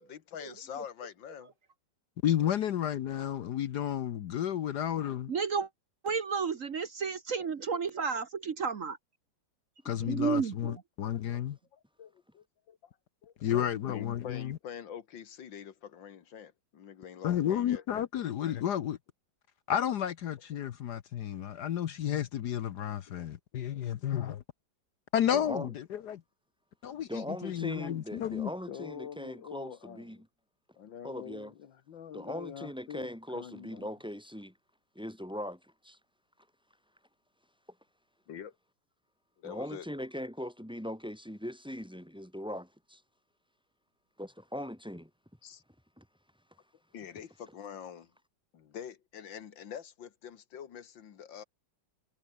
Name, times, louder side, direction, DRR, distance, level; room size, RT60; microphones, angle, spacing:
voice 1, 0.0-1.5 11.3-11.4 11.7-12.9 13.2-13.3 13.9-17.8 23.2-23.3 28.7-30.2 30.8-33.9 38.3-38.6 39.4-39.9 45.4-45.6 46.9-48.1 48.5-51.4, left 8 dB, 80° left, 2.1 m, -45 dB
voice 2, 2.2-5.3 9.8-11.6 13.4-14.6 17.2-19.0 19.7-24.4 25.1-26.2 26.8-28.5, left 10 dB, 65° left, 1.4 m, -32 dB
voice 3, 5.3-5.7 6.0-9.0 10.0-10.8, right 6 dB, 50° right, 1.4 m, -32 dB
voice 4, 25.3-25.7 27.1-30.2 31.0-31.5 32.1-34.5 34.9-36.0 39.4-43.0 44.2-45.1 46.0-46.1, equal, ahead, 2.5 m, -40 dB
omnidirectional pair, 2.0 m